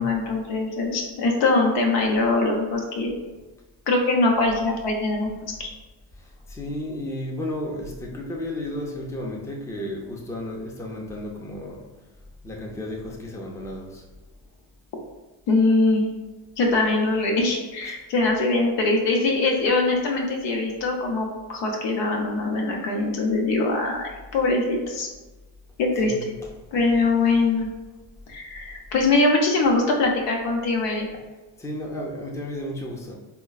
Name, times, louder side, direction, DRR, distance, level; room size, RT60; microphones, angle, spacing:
voice 1, 0.0-3.1 3.9-5.3 5.6-5.7 15.5-16.1 16.6-25.1 25.8-26.1 26.7-27.7 28.3-31.1, left 3 dB, 70° left, 0 dB, 0.8 m, -22 dB
voice 2, 6.2-11.9 12.4-14.0 17.8-18.0 26.0-26.5 31.6-33.2, left 1 dB, 5° left, -2 dB, 0.5 m, -33 dB
3.8 x 2.1 x 2.3 m, 1.2 s
supercardioid pair, 75°, 45 cm